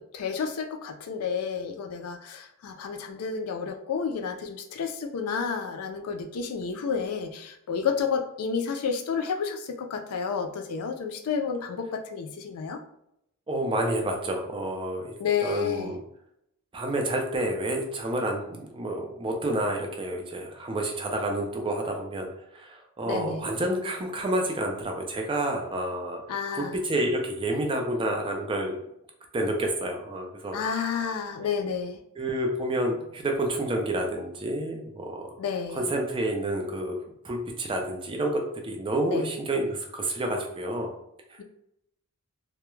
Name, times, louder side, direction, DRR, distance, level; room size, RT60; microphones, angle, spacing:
voice 1, 0.0-12.8 15.2-15.9 23.1-23.5 26.3-26.8 30.5-32.0 35.4-35.8 39.1-39.3, left 6 dB, 75° left, 5 dB, 0.4 m, -30 dB
voice 2, 13.5-15.1 15.4-16.0 16.7-22.3 22.5-26.2 26.5-28.8 29.3-30.6 32.2-35.3 35.7-36.9 37.2-40.9 41.3-41.4, right 1 dB, 25° right, 2 dB, 0.4 m, -29 dB
2.2 x 2.0 x 3.0 m, 0.78 s
head